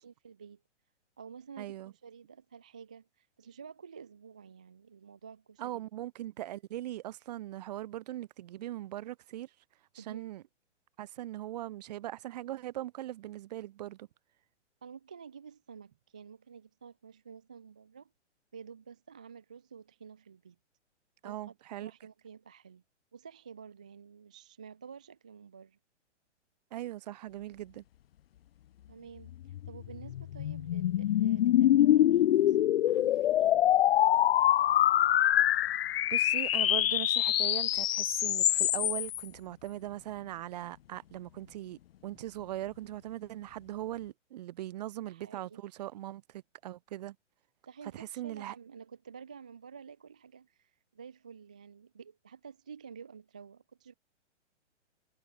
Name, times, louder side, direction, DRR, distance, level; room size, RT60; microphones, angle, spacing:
voice 1, 0.0-0.6 1.2-5.9 10.0-10.3 14.8-18.1 18.5-20.6 21.2-21.5 21.8-22.8 23.1-25.8 28.9-32.6 32.9-33.6 45.0-45.6 47.7-53.9, right 6 dB, 5° right, 0.3 m, -50 dB
voice 2, 1.6-1.9 5.6-9.5 9.9-10.4 11.0-14.1 21.2-21.9 26.7-27.8 36.1-47.2 47.9-48.5, right 14 dB, 35° right, 0.8 m, -40 dB
sound 1, 29.5-39.2, left 12 dB, 55° left, 0.4 m, -25 dB
hypercardioid pair, 160°, 36 cm